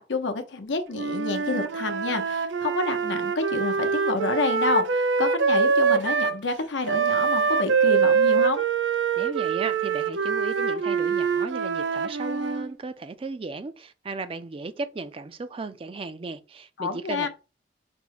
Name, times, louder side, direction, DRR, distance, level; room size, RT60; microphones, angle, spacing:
voice 1, 0.0-8.6 16.8-17.3, left 3 dB, 80° left, 0.8 m, -29 dB
Wind instrument woodwind instrument, 0.9-6.4 6.9-12.7, right 5 dB, 85° right, 0.5 m, -24 dB
voice 2, 9.2-17.3, right 3 dB, 30° right, 0.3 m, -35 dB
5.2 x 2.1 x 4.6 m
head